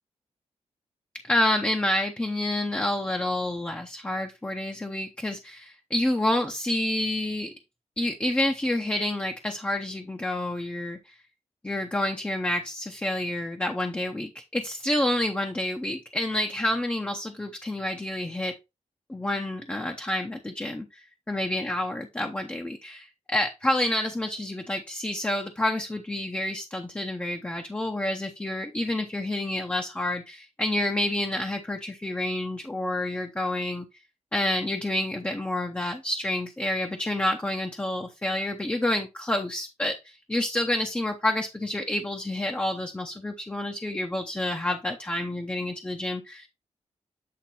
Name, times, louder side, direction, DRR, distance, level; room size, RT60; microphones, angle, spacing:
voice 1, 1.2-7.5 8.0-11.1 11.6-18.5 19.1-20.9 21.3-33.9 34.3-46.5, left 1 dB, 10° left, 3 dB, 0.8 m, -28 dB
8.5 x 3.5 x 4.2 m, 0.24 s
wide cardioid pair, 135°, 11 cm